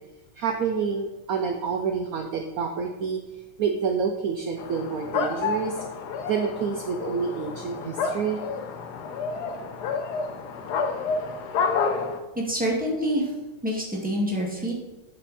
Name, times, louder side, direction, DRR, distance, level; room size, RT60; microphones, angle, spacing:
voice 1, 0.4-5.8 6.3-8.4, right 6 dB, 70° right, 5 dB, 0.9 m, -28 dB
sound 1, 4.6-12.2, left 5 dB, 65° left, 1.2 m, -29 dB
voice 2, 12.3-13.3 13.6-14.8, equal, 5° right, -3 dB, 1.9 m, -26 dB
8.4 x 6.9 x 4.2 m, 1.1 s
omnidirectional pair, 2.2 m